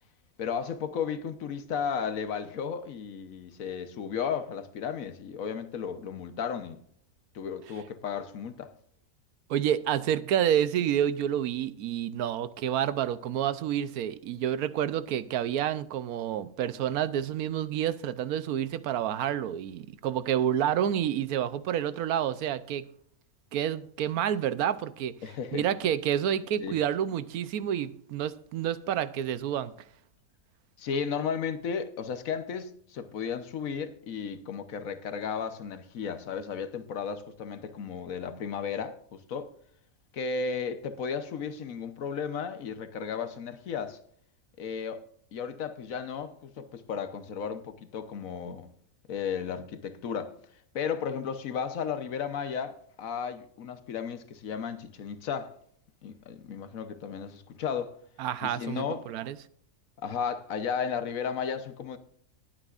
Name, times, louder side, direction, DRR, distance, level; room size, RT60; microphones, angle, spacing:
voice 1, 0.4-6.8 7.3-8.7 25.2-25.6 26.6-26.8 30.8-39.5 40.1-44.0 44.6-45.0 45.3-48.7 49.1-50.3 50.7-55.6 56.0-57.9 58.4-59.1 60.0-62.0, left 6 dB, 70° left, 1.3 m, -34 dB
voice 2, 9.5-22.8 23.5-25.1 25.5-29.7 58.2-59.4, right 10 dB, 85° right, 1.2 m, -29 dB
19.5 x 8.9 x 2.5 m
omnidirectional pair, 1.5 m